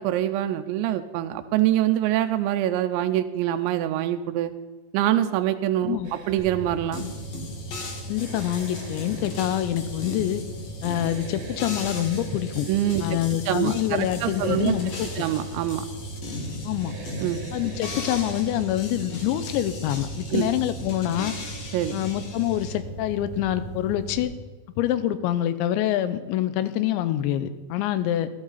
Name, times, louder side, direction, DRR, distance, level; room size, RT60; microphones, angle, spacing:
voice 1, 0.0-4.5 4.9-6.0 6.3-7.0 12.7-13.0 13.5-14.7 15.2-15.9 17.2-17.4 20.3-20.5 21.7-22.0, right 12 dB, 90° right, 8 dB, 2.9 m, -24 dB
sound 1, 6.0-18.8, right 5 dB, 70° right, 4.0 m, -46 dB
sound 2, 6.4-24.2, right 2 dB, 25° left, 2.2 m, -38 dB
sound 3, 6.9-22.7, left 3 dB, 50° left, 2.1 m, -38 dB
voice 2, 8.1-10.4 10.8-12.7 13.0-15.1 16.6-16.9 17.5-21.3 21.9-24.3 24.8-28.3, left 12 dB, 90° left, 12 dB, 3.0 m, -26 dB
14.0 x 12.5 x 4.1 m, 1.3 s
omnidirectional pair, 5.1 m